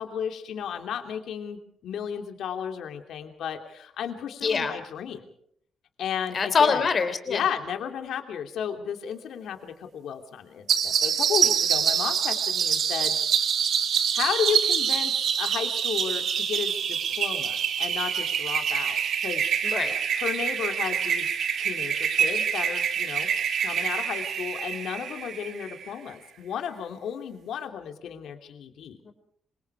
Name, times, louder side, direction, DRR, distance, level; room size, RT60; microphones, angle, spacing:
voice 1, 0.0-5.3 6.0-6.9 7.3-13.5 14.1-19.4 20.2-21.3 21.6-23.3 23.6-29.0, left 8 dB, 70° left, 6 dB, 3.0 m, -33 dB
voice 2, 4.4-4.7 6.3-7.4 19.6-19.9 29.1-29.2, left 5 dB, 35° left, 10 dB, 3.6 m, -24 dB
sound 1, 10.7-25.9, right 8 dB, 55° right, 2.3 m, -26 dB
27.0 x 26.0 x 4.8 m, 0.66 s
cardioid pair, 170°, 0 cm